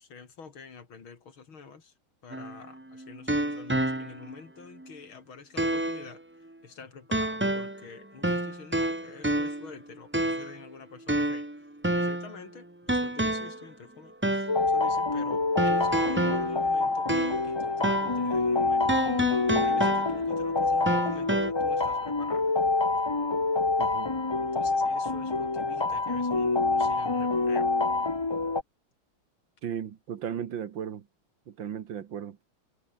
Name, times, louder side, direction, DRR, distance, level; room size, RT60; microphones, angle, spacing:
voice 1, 0.0-1.9 2.2-11.7 12.0-18.9 19.6-22.6 24.4-27.7, left 5 dB, 70° left, 3.7 m, -47 dB
sound 1, 2.3-4.4 4.8-4.9 5.6-6.1 7.1-7.9 8.2-9.7 10.1-10.6 11.1-12.4 12.9-13.6 14.2-14.6 15.6-17.6 17.8-18.2 18.9-20.4 20.9-21.5, right 1 dB, 10° right, 0.8 m, -29 dB
sound 2, 14.5-28.6, left 3 dB, 30° left, 0.5 m, -27 dB
voice 2, 23.8-24.1 29.6-31.1 31.5-32.4, right 9 dB, 65° right, 2.0 m, -36 dB
omnidirectional pair, 2.3 m